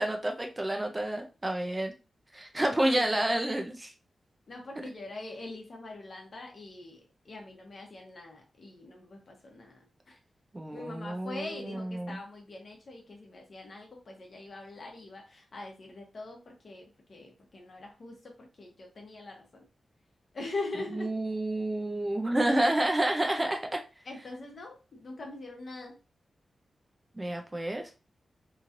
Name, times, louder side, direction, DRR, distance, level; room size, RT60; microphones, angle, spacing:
voice 1, 0.0-1.9 2.3-3.9 10.5-12.2 21.0-23.8 27.1-27.8, right 1 dB, 20° right, 4 dB, 0.5 m, -29 dB
voice 2, 2.5-3.3 4.5-10.2 10.7-19.7 20.3-21.1 24.0-26.0, left 2 dB, 55° left, 1 dB, 0.9 m, -43 dB
3.0 x 2.7 x 2.5 m, 0.31 s
wide cardioid pair, 95°, 0 cm